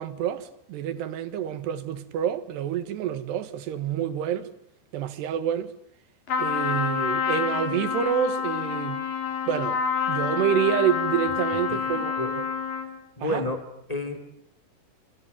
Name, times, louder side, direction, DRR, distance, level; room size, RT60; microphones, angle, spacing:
voice 1, 0.0-4.5 4.9-5.7 6.4-9.1 9.5-9.8 10.1-12.4 13.2-13.4, right 9 dB, 75° right, 3.7 m, -28 dB
Trumpet, 6.3-13.0, left 7 dB, 55° left, 4.6 m, -28 dB
voice 2, 11.7-12.4 13.2-14.2, left 1 dB, 10° left, 3.4 m, -31 dB
29.5 x 27.0 x 7.5 m
omnidirectional pair, 4.9 m